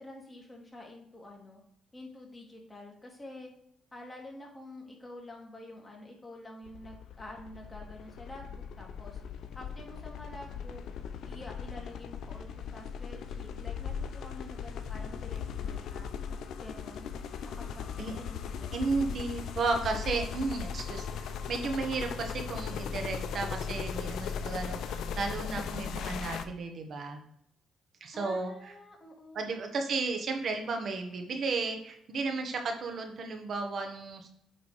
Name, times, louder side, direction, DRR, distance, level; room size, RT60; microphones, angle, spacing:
voice 1, 0.0-1.6 1.9-3.5 3.9-9.2 9.5-10.8 11.3-16.1 16.6-17.1 17.4-19.1 28.1-29.8, left 1 dB, 20° left, -1 dB, 2.6 m, -48 dB
sound 1, 6.7-26.4, left 7 dB, 75° left, 0.7 m, -38 dB
voice 2, 18.7-27.2 28.0-28.5 29.3-34.3, right 3 dB, 55° right, 4 dB, 1.5 m, -33 dB
8.9 x 3.8 x 4.8 m, 0.72 s
cardioid pair, 90°, 0 cm